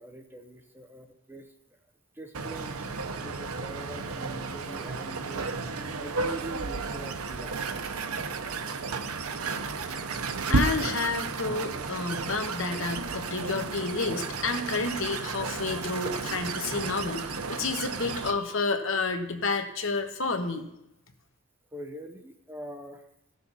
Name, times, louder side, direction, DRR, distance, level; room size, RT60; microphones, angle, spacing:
voice 1, 0.0-1.5 2.1-7.7 21.7-23.1, right 1 dB, 10° right, 4 dB, 0.7 m, -43 dB
sound 1, 2.3-18.3, right 4 dB, 85° right, 0.8 m, -33 dB
voice 2, 10.5-20.6, left 3 dB, 60° left, 6 dB, 1.1 m, -30 dB
16.5 x 6.6 x 4.1 m, 0.85 s
head